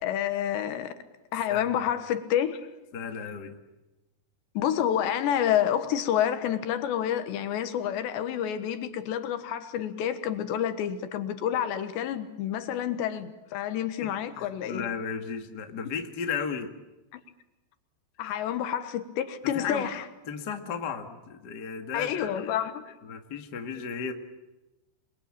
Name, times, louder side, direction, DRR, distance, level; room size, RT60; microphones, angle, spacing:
voice 1, 0.0-0.9 1.3-2.7 4.5-14.9 17.1-17.2 18.2-20.1 21.9-23.0, left 10 dB, 75° left, 3.5 m, -29 dB
voice 2, 2.9-3.6 14.0-14.1 14.4-16.7 19.4-19.9 20.3-22.5 23.0-24.1, left 6 dB, 50° left, 1.1 m, -34 dB
28.5 x 22.5 x 8.8 m
omnidirectional pair, 5.3 m